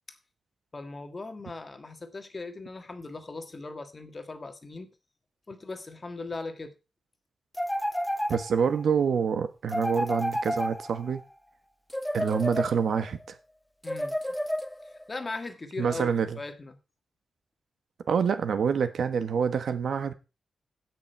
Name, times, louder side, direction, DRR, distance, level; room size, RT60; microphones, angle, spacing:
voice 1, 0.7-4.9 5.5-6.7 13.8-14.1 15.1-16.8, left 3 dB, 25° left, 1.5 m, -38 dB
sound 1, 7.5-8.8 9.7-11.2 11.9-13.1 13.8-15.0, equal, 5° left, 0.7 m, -31 dB
voice 2, 8.3-11.2 12.1-13.2 15.8-16.4 18.1-20.1, right 6 dB, 70° right, 1.3 m, -26 dB
16.0 x 6.3 x 4.5 m
wide cardioid pair, 155°, 0 cm